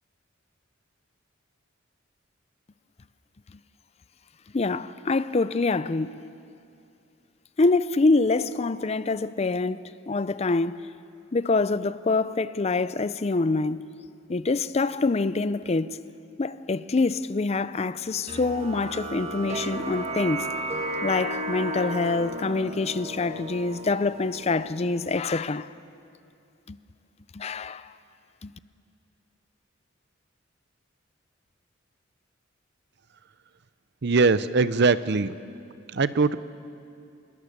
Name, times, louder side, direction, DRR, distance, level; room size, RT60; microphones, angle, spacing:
voice 1, 4.5-6.2 7.6-10.9 11.3-13.9 14.3-16.0 16.4-20.5 21.0-25.7 26.7-26.8 27.3-27.9 28.4-28.5, left 3 dB, 35° left, 0.5 m, -25 dB
sound 1, 18.3-25.1, right 1 dB, 35° right, 1.5 m, -34 dB
voice 2, 34.0-35.3 35.9-36.4, right 4 dB, 60° right, 0.7 m, -21 dB
25.5 x 21.0 x 6.7 m
head